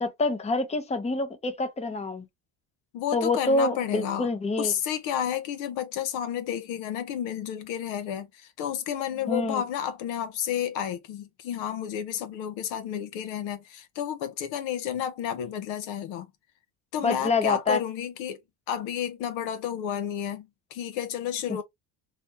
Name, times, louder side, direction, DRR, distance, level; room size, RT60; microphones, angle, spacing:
voice 1, 0.0-2.3 3.1-4.7 9.3-9.6 17.0-17.8, left 3 dB, 15° left, 0.7 m, -26 dB
voice 2, 2.9-4.3 4.6-16.3 16.9-18.4 18.7-21.6, left 9 dB, 65° left, 0.7 m, -31 dB
3.3 x 2.0 x 2.7 m
supercardioid pair, 75°, 48 cm